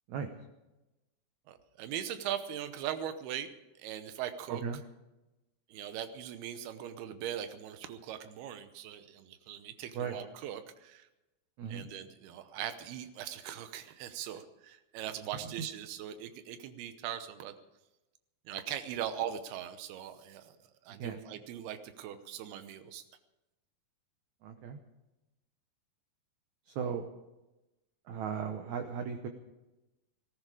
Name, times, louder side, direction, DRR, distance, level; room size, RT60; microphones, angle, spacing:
voice 1, 1.5-4.6 5.7-11.1 11.7-17.5 18.5-20.6 20.9-23.0, right 10 dB, 90° right, 10 dB, 2.9 m, -40 dB
voice 2, 24.4-24.8 26.7-27.1 28.1-29.3, right 7 dB, 70° right, 5 dB, 1.9 m, -36 dB
17.5 x 14.5 x 4.9 m, 1.0 s
omnidirectional pair, 4.4 m